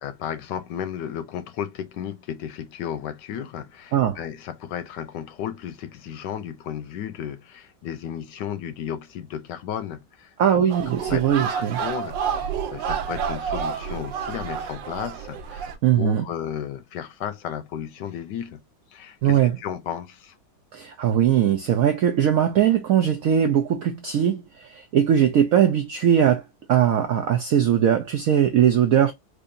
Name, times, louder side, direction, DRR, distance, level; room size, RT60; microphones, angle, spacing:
voice 1, 0.0-10.7 11.0-18.6 18.9-20.3, left 9 dB, 70° left, 1.2 m, -34 dB
voice 2, 10.4-11.8 15.8-16.3 19.2-19.6 20.7-26.4 26.7-29.1, right 9 dB, 90° right, 0.7 m, -20 dB
sound 1, 10.7-15.8, right 7 dB, 70° right, 1.4 m, -29 dB
4.6 x 2.7 x 2.6 m
omnidirectional pair, 2.1 m